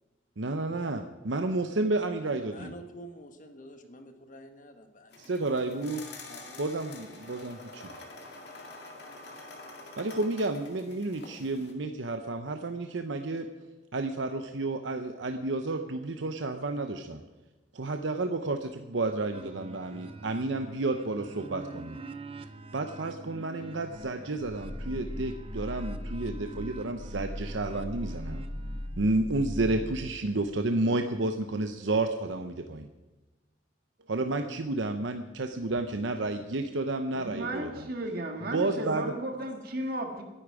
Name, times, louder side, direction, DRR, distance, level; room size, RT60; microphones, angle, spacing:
voice 1, 0.4-2.7 5.2-6.0 6.6-7.9 10.0-13.5 13.9-17.2 17.7-22.0 22.7-28.4 29.0-32.9 34.1-37.9 38.4-39.1, right 2 dB, 70° right, 6 dB, 0.8 m, -31 dB
voice 2, 2.4-5.3 6.3-6.7, equal, 45° left, 6 dB, 1.5 m, -48 dB
sound 1, 5.1-11.7, left 2 dB, 60° left, 2.2 m, -47 dB
sound 2, 19.3-29.1, right 2 dB, 30° right, 0.7 m, -45 dB
Growling, 24.0-30.3, left 1 dB, 25° left, 0.7 m, -39 dB
voice 3, 37.2-40.2, right 1 dB, 50° right, 4 dB, 1.7 m, -34 dB
22.0 x 10.0 x 4.9 m, 1.1 s
head